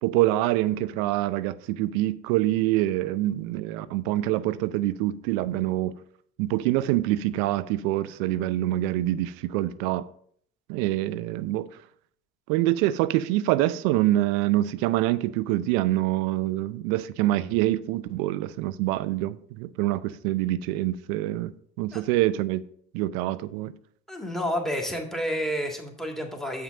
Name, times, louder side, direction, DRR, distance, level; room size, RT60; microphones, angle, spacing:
voice 1, 0.0-5.9 6.4-10.0 10.7-11.7 12.5-21.5 21.8-22.7 22.9-23.7, right 15 dB, 85° right, 0.6 m, -25 dB
voice 2, 24.1-26.6, equal, ahead, 1.9 m, -30 dB
7.1 x 6.0 x 5.2 m
supercardioid pair, 90°, 39 cm